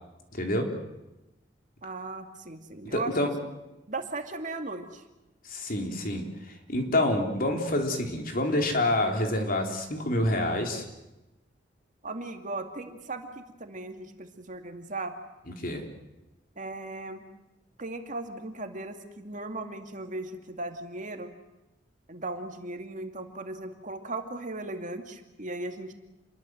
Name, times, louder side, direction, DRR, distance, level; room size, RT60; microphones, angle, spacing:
voice 1, 0.3-0.7 2.8-3.3 5.4-10.8 15.6-15.9, left 1 dB, 50° left, 4 dB, 3.8 m, -27 dB
voice 2, 1.8-3.1 3.4-3.6 3.9-5.0 12.0-15.2 16.6-17.2 17.8-21.3 22.1-25.9, right 2 dB, 45° right, 6 dB, 2.4 m, -37 dB
28.0 x 22.0 x 7.8 m, 0.97 s
head